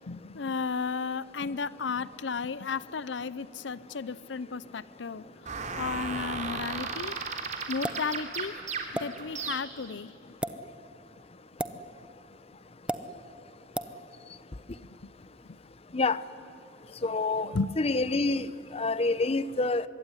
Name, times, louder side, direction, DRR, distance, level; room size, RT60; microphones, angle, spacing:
voice 1, 0.1-5.3 5.8-7.2 7.7-8.5 8.9-10.4 11.7-11.8 17.4-17.7, left 4 dB, 70° left, 18 dB, 0.6 m, -34 dB
sound 1, 5.5-9.9, right 4 dB, 40° right, 3.1 m, -35 dB
sound 2, 7.8-8.1 8.9-9.1 10.3-10.5 11.6-11.8 12.9-13.0 13.7-13.9, right 1 dB, 5° right, 1.0 m, -32 dB
voice 2, 17.0-17.5 17.8-18.5 18.7-19.8, left 3 dB, 35° left, 16 dB, 0.7 m, -27 dB
25.0 x 22.5 x 9.8 m, 2.7 s
head